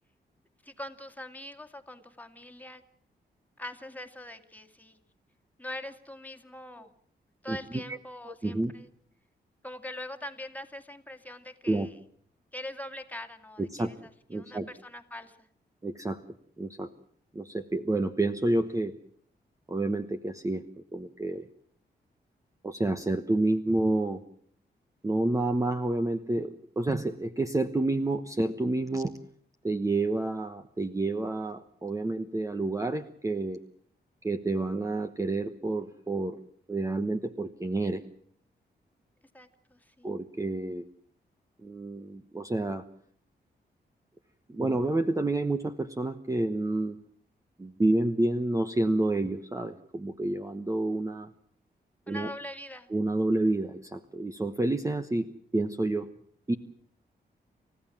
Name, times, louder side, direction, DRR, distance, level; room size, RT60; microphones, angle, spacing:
voice 1, 0.6-2.8 3.6-5.0 5.6-6.9 7.4-8.9 9.6-11.9 12.5-15.5 39.3-40.2 52.1-52.9, left 1 dB, 10° left, 6 dB, 2.3 m, -43 dB
voice 2, 7.5-8.0 8.2-8.7 11.7-11.9 13.6-13.9 14.3-14.7 15.8-16.2 16.6-16.9 17.3-18.9 19.7-20.6 20.9-21.4 22.6-24.2 25.0-29.1 29.6-33.6 34.2-36.4 36.7-38.0 40.0-40.8 41.6-42.8 44.5-47.0 47.6-51.3 52.1-52.3 52.9-56.1 56.5-56.6, right 2 dB, 20° right, 9 dB, 1.1 m, -29 dB
29.5 x 15.5 x 7.4 m, 0.62 s
cardioid pair, 95°, 18 cm